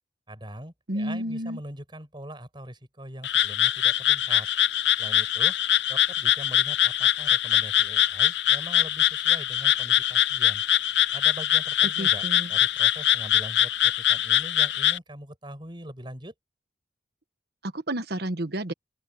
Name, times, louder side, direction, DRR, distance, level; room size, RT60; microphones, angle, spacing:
voice 1, 0.3-4.5 5.0-5.5 5.9-10.6 11.1-16.3, right 1 dB, 25° right, 6.1 m, -42 dB
voice 2, 0.9-1.6 12.0-12.5 17.6-18.7, right 1 dB, 60° right, 1.3 m, -31 dB
Frog, 3.2-15.0, left 12 dB, 70° left, 0.7 m, -23 dB
open air
head